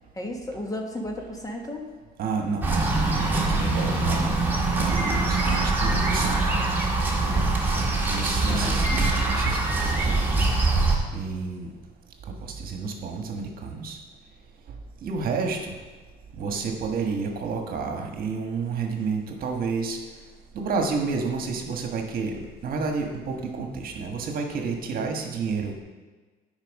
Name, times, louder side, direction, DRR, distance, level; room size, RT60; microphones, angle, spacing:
voice 1, 0.2-1.9 8.5-9.1, left 1 dB, 20° left, 2 dB, 1.3 m, -34 dB
voice 2, 2.2-2.6 3.0-4.4 4.9-6.4 7.8-10.4 11.1-11.7 12.3-14.0 15.0-15.7 16.4-20.0 20.5-22.3 22.6-25.8, right 4 dB, 60° right, 3 dB, 1.3 m, -30 dB
sound 1, 2.6-11.0, right 2 dB, 10° right, 1.8 m, -23 dB
9.0 x 5.4 x 5.3 m, 1.3 s
cardioid pair, 110°, 17 cm